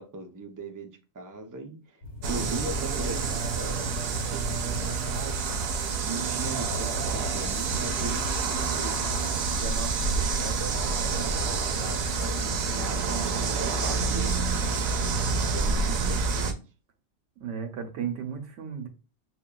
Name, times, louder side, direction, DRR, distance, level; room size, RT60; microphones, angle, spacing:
voice 1, 0.0-5.4 6.0-9.0 9.5-14.9 15.5-16.6, right 3 dB, 30° right, 4 dB, 0.3 m, -39 dB
sound 1, 2.0-16.4, left 4 dB, 70° left, 1.5 m, -41 dB
sound 2, 2.2-16.5, right 4 dB, 65° right, 0.8 m, -28 dB
voice 2, 17.4-18.9, right 7 dB, 85° right, 5 dB, 1.0 m, -34 dB
6.2 x 2.2 x 2.2 m, 0.33 s
omnidirectional pair, 1.2 m